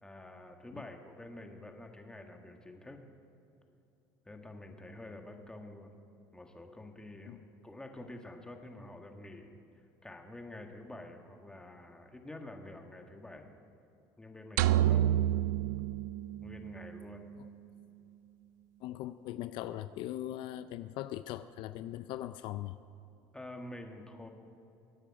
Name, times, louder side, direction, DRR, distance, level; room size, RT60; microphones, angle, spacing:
voice 1, 0.0-3.0 4.2-5.9 6.3-7.4 7.6-9.6 10.0-13.5 14.2-15.2 16.4-17.3 23.3-24.3, left 1 dB, 10° left, 3 dB, 1.7 m, -48 dB
sound 1, 14.6-16.9, right 12 dB, 90° right, 0.4 m, -28 dB
voice 2, 18.8-22.8, left 13 dB, 65° left, 12 dB, 0.4 m, -40 dB
23.0 x 8.9 x 4.9 m, 2.7 s
supercardioid pair, 100°, 9 cm